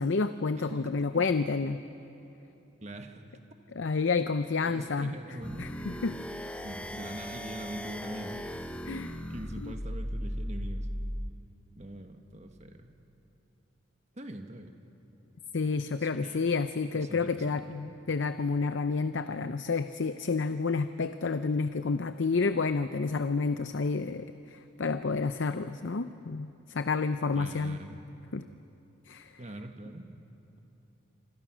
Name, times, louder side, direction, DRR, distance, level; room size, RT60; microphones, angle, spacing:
voice 1, 0.0-1.8 3.7-5.1 5.6-6.2 8.9-9.2 9.6-9.7 15.5-27.8 28.3-28.4 29.1-29.3, left 4 dB, 60° left, 10 dB, 0.6 m, -30 dB
voice 2, 0.7-1.2 2.8-3.2 4.6-5.7 6.6-8.4 9.3-10.9 11.7-12.9 14.1-14.7 16.0-16.4 16.9-17.7 27.3-28.0 29.4-30.1, right 1 dB, 35° right, 5 dB, 1.5 m, -43 dB
sound 1, 5.4-11.3, equal, 5° left, 0.8 m, -37 dB
26.5 x 26.0 x 6.2 m, 2.9 s
head